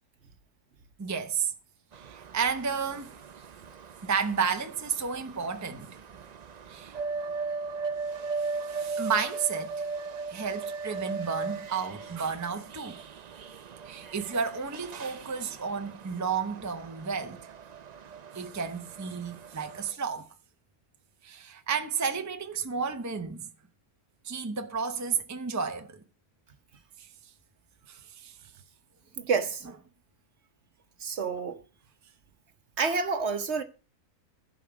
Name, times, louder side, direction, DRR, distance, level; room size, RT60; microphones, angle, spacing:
voice 1, 1.0-1.5 2.0-3.1 4.0-5.9 6.7-7.0 8.4-9.9 10.3-13.0 13.8-17.4 18.3-20.3 21.2-23.5 24.2-26.0 27.0-27.1 27.9-28.3, right 6 dB, 15° right, 0.7 m, -32 dB
sound 1, 1.9-19.9, right 4 dB, 70° right, 0.4 m, -38 dB
voice 2, 29.2-29.7 31.0-31.6 32.8-33.6, right 5 dB, 55° right, 1.2 m, -28 dB
15.0 x 5.2 x 6.1 m
omnidirectional pair, 1.5 m